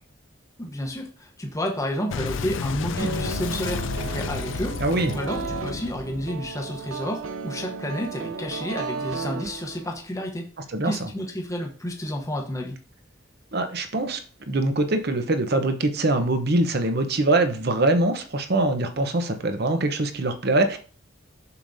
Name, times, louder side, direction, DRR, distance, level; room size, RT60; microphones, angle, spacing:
voice 1, 0.6-10.5 10.8-12.8, equal, 15° left, 1 dB, 0.9 m, -31 dB
Boom, 2.1-7.3, left 5 dB, 70° left, 0.4 m, -32 dB
sound 1, 3.0-10.1, right 5 dB, 80° right, 0.6 m, -34 dB
voice 2, 4.8-5.1 10.7-11.1 13.5-14.2 14.5-20.8, right 2 dB, 50° right, 7 dB, 0.9 m, -23 dB
6.8 x 6.5 x 2.7 m, 0.40 s
head